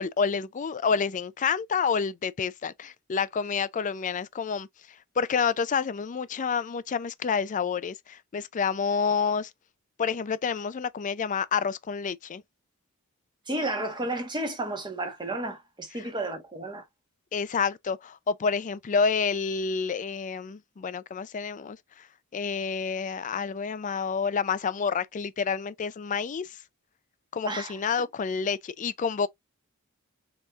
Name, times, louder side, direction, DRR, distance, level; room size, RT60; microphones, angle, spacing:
voice 1, 0.0-4.7 5.2-9.5 10.0-12.4 15.9-16.1 17.3-21.8 22.3-26.6 27.3-29.3, left 5 dB, 35° left, 0.4 m, -28 dB
voice 2, 13.5-16.8 27.4-27.8, right 2 dB, 20° right, 1.2 m, -32 dB
5.4 x 3.0 x 2.4 m
head